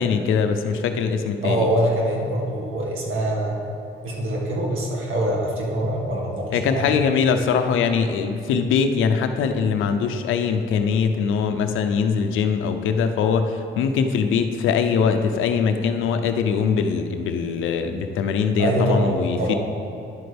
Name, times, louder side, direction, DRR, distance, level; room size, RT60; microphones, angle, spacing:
voice 1, 0.0-1.7 6.5-19.5, left 6 dB, 85° left, 7 dB, 0.6 m, -22 dB
voice 2, 1.4-3.6 4.0-6.8 18.6-19.6, right 1 dB, 85° right, -3 dB, 1.9 m, -24 dB
10.5 x 7.8 x 3.5 m, 2.6 s
cardioid pair, 90°, 20 cm